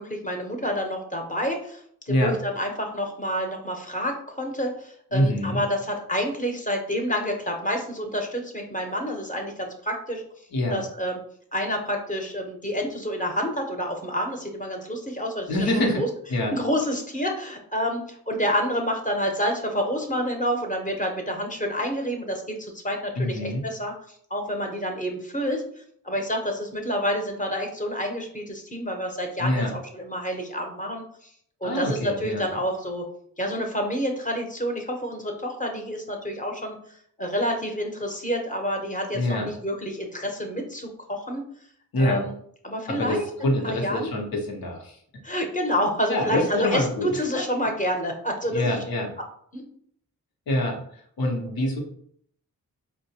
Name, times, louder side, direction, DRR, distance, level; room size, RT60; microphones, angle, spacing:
voice 1, 0.0-10.2 10.7-11.2 11.5-16.1 16.5-25.6 26.0-31.3 31.6-33.0 33.4-36.8 37.2-41.4 42.0-42.3 42.6-44.1 45.2-48.8 49.5-49.6, equal, 20° left, 2 dB, 0.8 m, -28 dB
voice 2, 5.1-5.6 10.5-10.8 15.5-16.0 16.3-16.5 23.2-23.6 29.4-29.7 31.6-32.4 39.1-39.5 41.9-42.2 42.9-45.0 46.1-47.4 48.5-49.1 50.5-50.8 51.2-51.8, left 1 dB, 85° left, 0 dB, 0.9 m, -25 dB
4.4 x 2.1 x 2.8 m, 0.64 s
cardioid pair, 50°, 35 cm